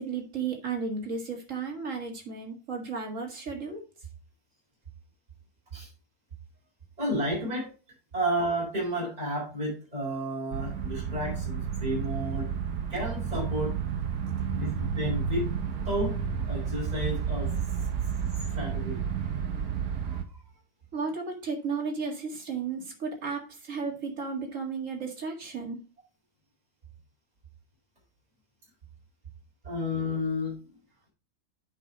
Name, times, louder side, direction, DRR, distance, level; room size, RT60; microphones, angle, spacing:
voice 1, 0.0-3.8 20.9-25.8, right 5 dB, 55° right, 2 dB, 2.3 m, -34 dB
voice 2, 7.0-7.7 8.1-12.5 12.9-13.8 14.5-15.5 15.9-16.2 16.5-17.5 18.5-19.0 20.0-20.2 29.6-30.5, equal, 25° right, -5 dB, 4.8 m, -31 dB
sound 1, 10.5-20.2, right 7 dB, 75° right, 1.7 m, -31 dB
8.2 x 5.4 x 4.9 m, 0.34 s
omnidirectional pair, 1.6 m